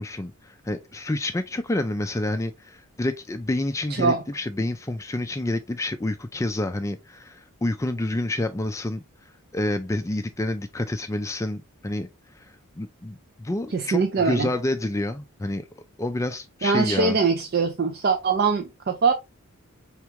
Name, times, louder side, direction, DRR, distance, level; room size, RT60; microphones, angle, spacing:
voice 1, 0.0-9.0 9.5-12.1 12.4-12.5 12.8-15.7 16.0-17.2, left 1 dB, 15° left, 0.4 m, -28 dB
voice 2, 3.9-4.2 13.7-14.5 16.6-19.1, right 4 dB, 45° right, 0.5 m, -22 dB
4.7 x 3.6 x 3.0 m
head